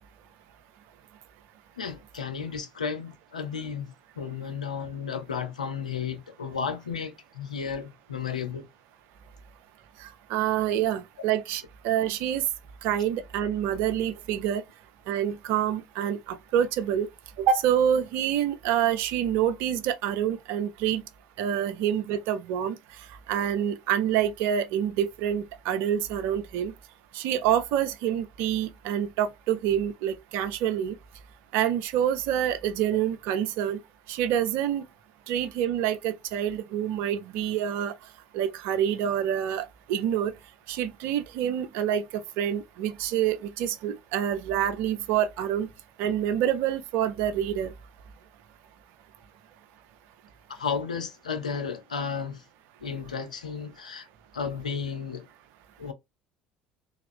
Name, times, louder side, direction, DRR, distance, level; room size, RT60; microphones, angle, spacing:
voice 1, 1.8-8.7 50.5-52.4 52.8-54.1 54.3-55.3 55.8-55.9, left 6 dB, 85° left, 0.5 m, -33 dB
voice 2, 10.3-12.4 12.8-14.6 15.1-17.1 17.4-21.0 21.4-22.7 23.3-26.7 27.1-31.0 31.5-33.8 34.1-34.9 35.3-37.9 38.3-40.3 40.7-45.7 46.0-47.7, right 10 dB, 65° right, 0.5 m, -27 dB
3.4 x 2.4 x 3.4 m
figure-of-eight pair, 60°, 4 cm